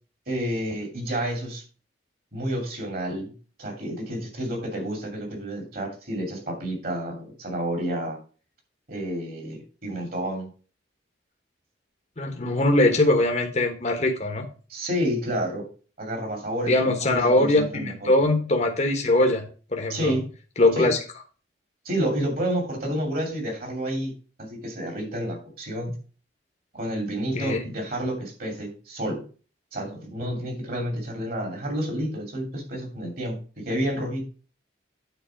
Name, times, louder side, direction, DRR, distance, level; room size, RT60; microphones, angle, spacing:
voice 1, 0.3-1.6 2.3-3.3 3.6-8.2 8.9-10.5 14.7-15.7 16.0-18.1 19.9-20.2 20.7-20.9 21.8-24.1 24.4-25.9 26.7-29.2 29.7-33.4 33.7-34.2, equal, 50° right, 2 dB, 2.8 m, -30 dB
voice 2, 12.2-14.5 16.7-20.1 20.6-21.0 27.3-27.6, left 2 dB, 35° left, 4 dB, 1.1 m, -22 dB
9.1 x 4.0 x 5.8 m, 0.37 s
head